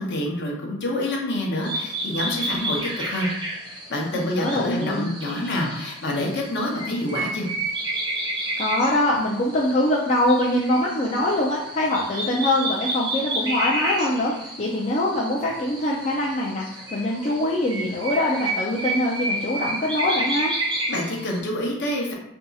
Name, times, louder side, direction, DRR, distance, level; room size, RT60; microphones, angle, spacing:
voice 1, 0.0-3.3 3.9-7.5 20.9-22.1, left 1 dB, 50° left, -1 dB, 0.8 m, -27 dB
sound 1, 1.6-21.4, right 1 dB, 20° right, 0.6 m, -31 dB
voice 2, 4.1-5.1 8.6-20.5, left 1 dB, 30° left, -4 dB, 0.4 m, -23 dB
2.7 x 2.3 x 3.9 m, 0.82 s
head